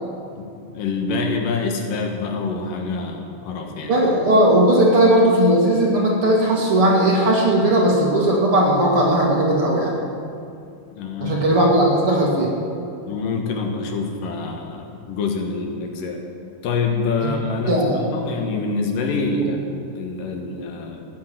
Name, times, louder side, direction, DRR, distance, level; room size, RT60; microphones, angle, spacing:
voice 1, 0.4-3.9 11.0-11.5 13.1-16.2 16.6-17.8 18.1-21.1, left 4 dB, 75° left, 3 dB, 3.0 m, -26 dB
voice 2, 3.9-10.0 11.2-12.5 17.2-17.3 17.7-18.1 19.4-19.5, right 1 dB, 45° right, -2 dB, 2.4 m, -17 dB
15.0 x 9.6 x 7.6 m, 2.5 s
omnidirectional pair, 4.0 m